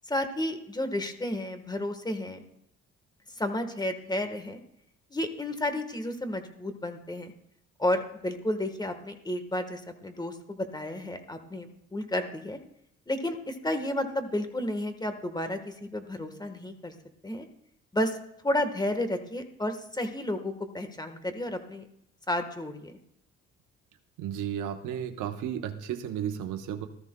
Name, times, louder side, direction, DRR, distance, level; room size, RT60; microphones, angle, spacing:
voice 1, 0.1-2.4 3.3-4.6 5.1-7.3 7.8-12.6 13.1-16.9 17.2-17.4 17.9-18.2 18.4-21.8 22.3-23.0, left 1 dB, 15° left, 7 dB, 1.3 m, -32 dB
voice 2, 24.2-26.9, right 9 dB, 85° right, 5 dB, 0.9 m, -33 dB
18.5 x 13.5 x 2.2 m, 0.75 s
cardioid pair, 90°, 30 cm